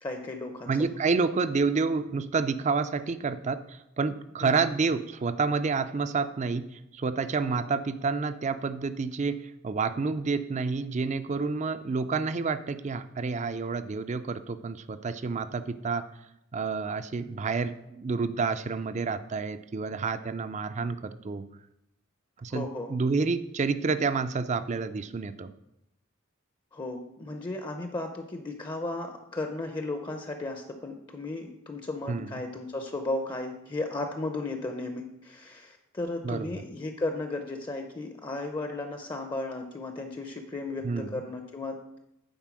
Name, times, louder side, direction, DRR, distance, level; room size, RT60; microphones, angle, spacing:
voice 1, 0.0-0.7 4.4-4.7 22.5-22.9 26.7-41.8, left 2 dB, 20° left, 5 dB, 0.6 m, -35 dB
voice 2, 0.7-16.1 16.5-21.4 22.4-25.5 32.1-32.4 36.2-36.6 40.8-41.2, right 4 dB, 35° right, 12 dB, 0.4 m, -29 dB
9.1 x 4.4 x 6.1 m, 0.86 s
head